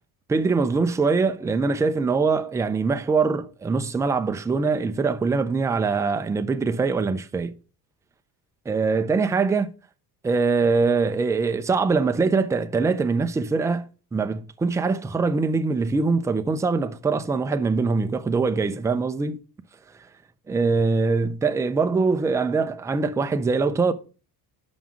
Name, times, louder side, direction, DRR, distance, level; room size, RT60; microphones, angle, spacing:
voice 1, 0.3-7.5 8.7-9.7 10.2-19.4 20.5-23.9, right 4 dB, 10° right, 0.3 m, -23 dB
6.0 x 5.6 x 6.1 m
cardioid pair, 140°, 39 cm